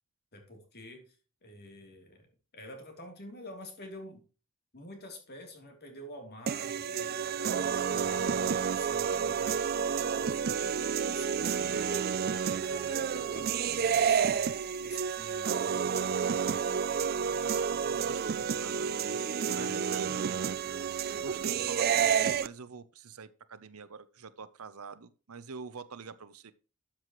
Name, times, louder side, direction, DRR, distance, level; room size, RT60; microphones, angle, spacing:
voice 1, 0.3-1.1 1.4-2.3 2.5-4.2 4.7-9.8 10.2-16.2 19.5-20.3, left 1 dB, 45° left, 3.2 m, -48 dB
sound 1, 6.5-22.5, right 7 dB, 45° right, 0.4 m, -30 dB
voice 2, 17.1-19.2 19.5-20.6 21.2-26.5, right 5 dB, 75° right, 0.8 m, -46 dB
13.0 x 7.6 x 3.1 m
head